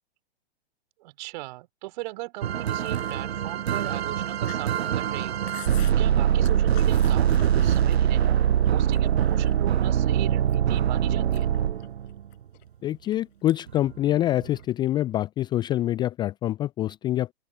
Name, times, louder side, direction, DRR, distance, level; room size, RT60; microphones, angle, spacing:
voice 1, 1.0-5.5 5.9-8.4 8.7-11.5, right 19 dB, 45° right, 4.0 m, -38 dB
sound 1, 2.4-12.2 13.7-13.9 14.4-14.5, right 9 dB, 75° right, 0.5 m, -23 dB
Chewing mastication, 2.8-8.3 8.6-9.7 10.2-10.8 11.2-13.2 13.5-13.8 14.1-14.9, left 23 dB, 45° left, 6.5 m, -48 dB
voice 2, 12.8-17.3, left 13 dB, 15° left, 0.5 m, -25 dB
open air
figure-of-eight pair, 105°, 32 cm